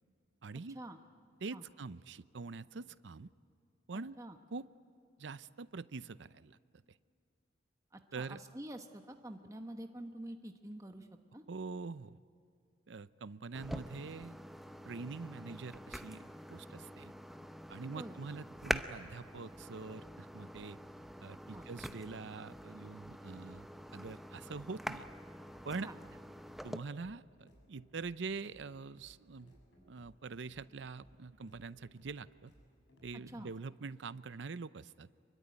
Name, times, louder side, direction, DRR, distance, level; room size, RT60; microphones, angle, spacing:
voice 1, 0.4-0.8 1.4-3.3 3.9-4.2 4.5-4.7 5.2-6.6 6.9-7.0 8.1-8.4 11.5-12.2 12.9-14.4 14.9-17.1 17.7-20.8 21.2-23.7 23.9-25.1 25.6-25.9 26.6-29.5 29.9-32.5 33.0-35.1, right 4 dB, 70° right, 16 dB, 0.6 m, -44 dB
voice 2, 7.9-11.1 11.3-11.4 17.9-18.1 21.5-21.7 25.8-26.0 33.3-33.5, right 1 dB, 15° right, 5 dB, 1.0 m, -47 dB
sound 1, 13.5-26.8, equal, ahead, 0.7 m, -45 dB
sound 2, 16.1-33.2, equal, 85° left, 7.4 m, -65 dB
26.0 x 23.0 x 9.6 m, 2.3 s
head